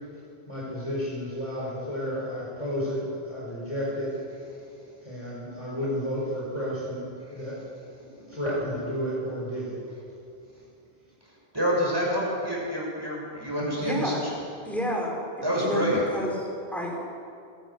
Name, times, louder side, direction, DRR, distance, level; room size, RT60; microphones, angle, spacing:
voice 1, 0.5-4.2 5.0-7.7 8.1-9.8, equal, 30° left, -5 dB, 5.4 m, -32 dB
voice 2, 11.5-14.2 15.4-16.0, equal, 25° right, -4 dB, 6.8 m, -27 dB
voice 3, 13.8-14.2 14.7-15.2 15.5-16.4 16.7-17.0, equal, ahead, -2 dB, 5.0 m, -30 dB
29.0 x 13.0 x 8.3 m, 2.5 s
omnidirectional pair, 1.0 m